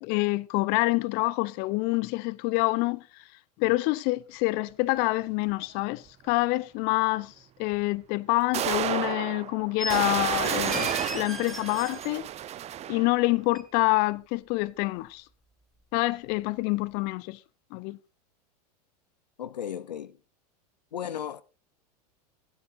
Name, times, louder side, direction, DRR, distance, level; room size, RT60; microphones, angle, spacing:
voice 1, 0.0-3.0 3.6-7.3 7.6-12.3 12.9-15.2 15.9-17.4 17.7-18.0, left 22 dB, 50° left, 0.8 m, -27 dB
sound 1, 5.8-5.9 7.7-7.8 8.5-13.2, right 11 dB, 30° right, 0.9 m, -31 dB
sound 2, 9.8-10.0 10.4-12.1 13.5-13.6, equal, ahead, 2.1 m, -37 dB
voice 2, 19.4-20.2 20.9-21.4, left 9 dB, 90° left, 0.7 m, -35 dB
16.0 x 12.0 x 2.7 m
hypercardioid pair, 100°, 21 cm